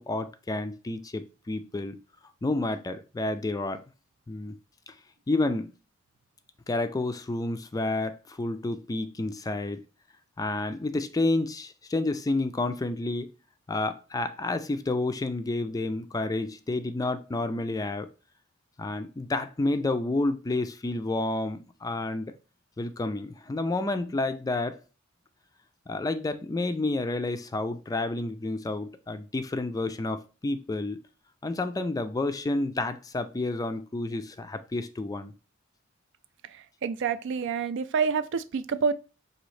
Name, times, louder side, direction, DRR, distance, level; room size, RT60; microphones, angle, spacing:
voice 1, 0.0-2.0 2.4-3.8 4.3-4.6 4.9-5.0 5.3-5.7 6.7-9.8 10.4-13.3 13.7-18.1 18.8-22.4 22.8-24.8 25.9-31.0 31.4-35.3, left 2 dB, 20° left, 0.3 m, -30 dB
voice 2, 36.8-38.9, right 6 dB, 60° right, 0.3 m, -27 dB
5.0 x 2.7 x 3.1 m
head